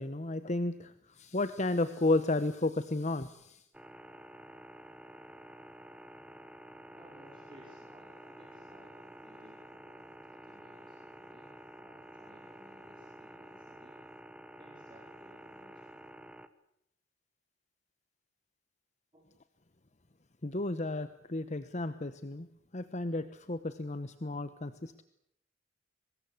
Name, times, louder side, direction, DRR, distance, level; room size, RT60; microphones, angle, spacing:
voice 1, 0.0-3.6 20.4-22.5 22.7-25.0, left 2 dB, 35° left, 12 dB, 1.0 m, -33 dB
sound 1, 3.7-16.5, right 1 dB, 5° right, 1.2 m, -51 dB
voice 2, 6.9-14.0 14.6-16.0 19.1-19.3, equal, 25° right, -1 dB, 5.0 m, -60 dB
24.0 x 20.5 x 8.4 m, 0.76 s
head